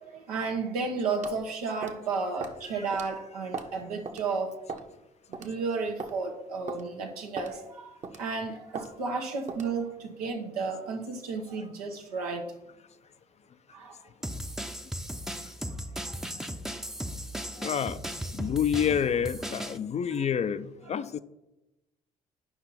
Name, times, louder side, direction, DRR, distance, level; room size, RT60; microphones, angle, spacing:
voice 1, 0.0-4.5 5.4-7.9 8.2-12.5 13.7-13.9 17.6-17.8 20.8-21.0, right 4 dB, 80° right, 3 dB, 1.1 m, -33 dB
sound 1, 1.2-1.4 1.8-2.0 2.4-2.6 2.9-3.1 3.5-3.8 4.1-4.2 4.7-4.9 5.3-5.5 6.0-6.2 6.7-6.8 7.4-7.6 8.0-8.3 8.8-8.9 9.5-9.7, right 4 dB, 40° right, 1.1 m, -38 dB
sound 2, 14.2-19.8, equal, ahead, 0.7 m, -36 dB
voice 2, 17.6-18.0 18.3-21.2, left 8 dB, 35° left, 14 dB, 0.5 m, -28 dB
9.5 x 5.8 x 4.1 m, 0.95 s
figure-of-eight pair, 50°, 19 cm